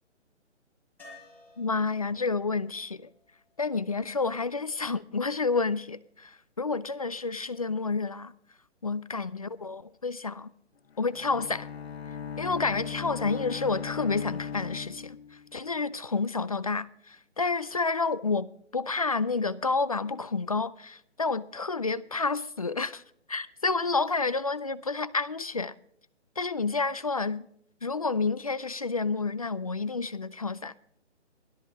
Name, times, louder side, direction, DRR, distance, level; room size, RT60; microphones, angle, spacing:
sound 1, 1.0-4.9 7.5-7.6 7.9-8.0, left 2 dB, 5° left, 5.8 m, -56 dB
voice 1, 1.6-3.1 3.6-8.3 8.8-10.5 11.0-11.7 12.4-23.0 23.3-25.7 26.4-27.5 27.8-30.7, left 4 dB, 35° left, 0.4 m, -30 dB
Bowed string instrument, 10.9-15.7, left 7 dB, 60° left, 1.1 m, -38 dB
17.0 x 13.0 x 3.6 m
hypercardioid pair, 155°, 35 cm